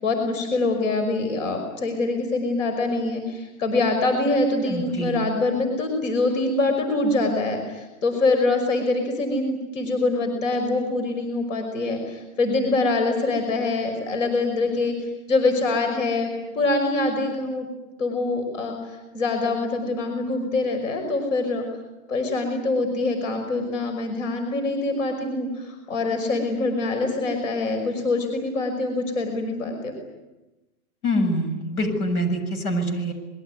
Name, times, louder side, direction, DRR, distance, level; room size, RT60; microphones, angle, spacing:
voice 1, 0.0-16.3 16.6-17.7 18.0-21.6 22.1-29.9, left 2 dB, 60° left, 6 dB, 5.7 m, -24 dB
voice 2, 4.7-5.2 31.0-33.1, equal, 85° left, 7 dB, 7.5 m, -25 dB
26.0 x 22.5 x 9.5 m, 1.0 s
hypercardioid pair, 175°, 43 cm